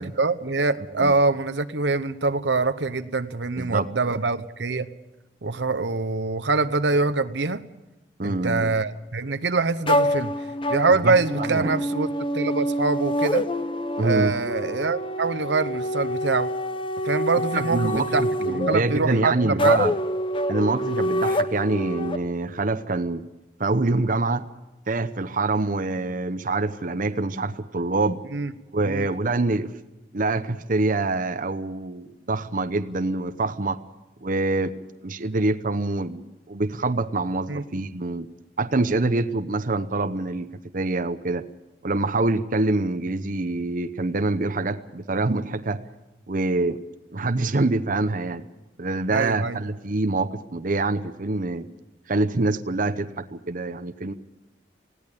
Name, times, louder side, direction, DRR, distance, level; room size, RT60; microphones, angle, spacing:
voice 1, 0.0-4.9 5.4-7.6 8.2-10.3 10.7-12.1 12.3-13.5 14.0-16.5 17.0-19.9 28.3-28.5 28.8-29.1 37.5-37.6 49.1-49.6, right 3 dB, 75° right, 11 dB, 0.9 m, -24 dB
voice 2, 3.6-4.2 8.2-8.8 10.9-11.8 14.0-14.3 17.5-19.9 20.5-23.3 23.6-24.4 24.9-28.2 28.7-29.7 30.1-33.8 34.2-34.7 35.0-38.3 38.6-41.5 41.8-45.8 46.3-46.8 47.1-48.4 48.8-51.7 52.1-54.1, right 2 dB, 50° right, 10 dB, 0.9 m, -25 dB
sound 1, 9.9-22.2, equal, 30° left, 0.9 m, -26 dB
19.5 x 16.5 x 8.4 m, 1.0 s
head